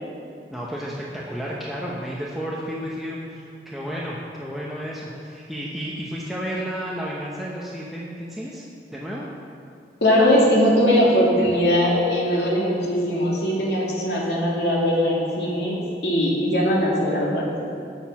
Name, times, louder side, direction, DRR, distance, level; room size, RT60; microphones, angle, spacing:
voice 1, 0.5-8.6 8.9-9.2, equal, ahead, -5 dB, 0.8 m, -32 dB
voice 2, 10.0-17.5, equal, 70° left, -4 dB, 2.2 m, -20 dB
10.0 x 6.6 x 5.7 m, 2.4 s
head